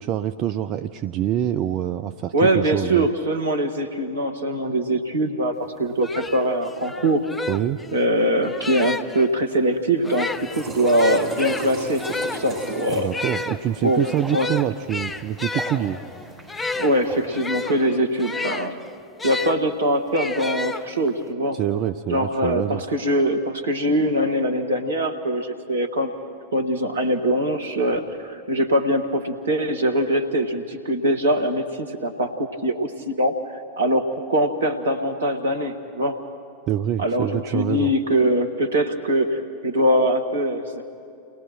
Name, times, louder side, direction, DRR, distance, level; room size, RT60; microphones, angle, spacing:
voice 1, 0.0-3.1 7.5-7.8 12.9-16.0 21.5-22.8 36.7-37.9, right 11 dB, 35° right, 10 dB, 0.5 m, -25 dB
voice 2, 2.3-7.2 7.9-10.3 10.5-13.1 13.8-14.5 16.7-18.7 19.2-21.6 22.1-26.1 26.5-36.2 37.0-40.8, right 1 dB, 70° right, 7 dB, 1.7 m, -22 dB
sound 1, 5.6-5.7 6.0-9.3 10.0-19.6 20.1-21.2, left 3 dB, 10° left, 0.7 m, -32 dB
sound 2, 10.1-17.3, right 2 dB, 15° right, 7.5 m, -38 dB
29.5 x 20.0 x 4.5 m, 2.5 s
figure-of-eight pair, 90°, 0 cm